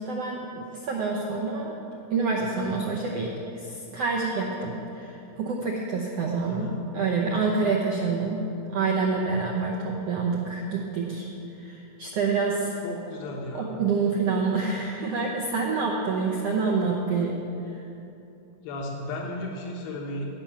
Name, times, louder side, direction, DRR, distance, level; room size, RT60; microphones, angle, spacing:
voice 1, 0.0-1.8 2.1-8.5 8.7-11.3 11.6-12.8 13.5-17.4 17.7-17.8, right 4 dB, 70° right, -2 dB, 1.5 m, -27 dB
voice 2, 6.5-6.8 12.8-13.7 18.6-20.3, left 1 dB, 90° left, -1 dB, 2.9 m, -34 dB
16.5 x 6.0 x 7.1 m, 2.8 s
omnidirectional pair, 3.9 m